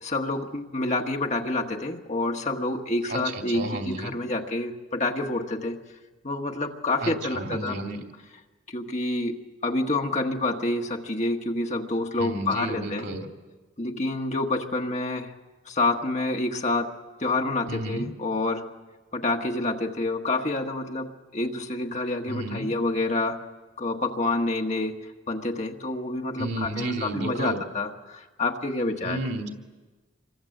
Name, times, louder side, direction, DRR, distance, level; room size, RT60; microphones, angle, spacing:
voice 1, 0.0-5.8 6.2-7.8 8.7-13.1 13.8-15.3 15.7-16.9 17.2-18.6 19.1-23.4 23.8-25.0 25.3-29.2, left 2 dB, 35° left, 3 dB, 1.5 m, -28 dB
voice 2, 3.1-4.1 7.0-8.0 12.2-13.3 17.7-18.1 22.3-22.7 26.4-27.6 29.0-29.5, right 2 dB, 55° right, 3 dB, 2.8 m, -32 dB
27.5 x 24.0 x 7.9 m, 1.3 s
head